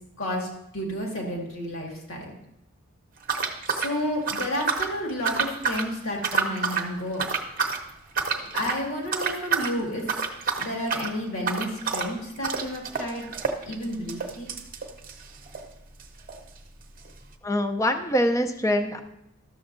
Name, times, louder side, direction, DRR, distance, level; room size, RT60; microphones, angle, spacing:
voice 1, 0.2-0.5 0.7-2.3 3.7-7.3 8.5-10.1 10.6-13.3 13.6-14.5, left 1 dB, 75° left, -1 dB, 1.9 m, -31 dB
sound 1, 3.2-5.0 5.2-5.9 6.2-6.9 7.2-7.8 8.2-8.8 9.1-9.7 10.0-15.7 16.0-16.1 16.3-16.4 17.1-17.2, right 5 dB, 40° right, 0.8 m, -28 dB
voice 2, 17.4-19.0, equal, 15° left, 7 dB, 0.5 m, -24 dB
13.0 x 7.0 x 2.6 m, 0.84 s
head